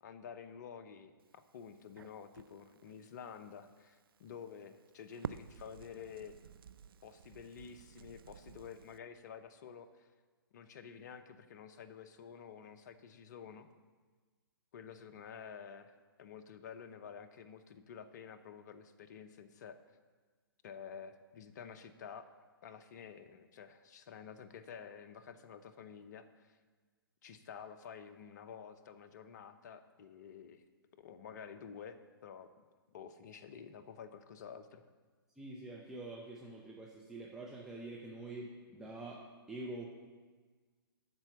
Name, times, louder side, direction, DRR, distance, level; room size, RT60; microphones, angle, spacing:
voice 1, 0.0-6.4 7.0-10.1 10.5-13.7 14.7-19.8 20.6-22.3 22.6-26.6 27.2-30.6 31.0-32.5 32.9-34.9, left 7 dB, 45° left, 10 dB, 0.8 m, -50 dB
Crackle, 1.2-9.0, right 8 dB, 65° right, 0.4 m, -52 dB
voice 2, 35.4-39.9, right 2 dB, 5° right, -3 dB, 0.9 m, -46 dB
12.5 x 4.4 x 7.0 m, 1.4 s
figure-of-eight pair, 130°, 13 cm